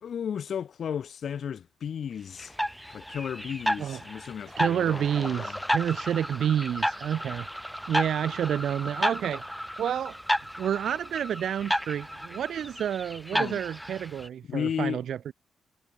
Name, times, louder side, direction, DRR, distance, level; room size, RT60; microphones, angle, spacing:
voice 1, 0.0-2.6 2.9-5.6 13.3-13.6 14.5-15.0, left 8 dB, 60° left, 2.3 m, -34 dB
sound 1, 2.4-14.3, equal, ahead, 0.3 m, -32 dB
voice 2, 4.6-7.5 7.9-9.4 9.8-10.2 10.6-15.3, right 9 dB, 75° right, 0.8 m, -29 dB
cardioid pair, 125°, 0 cm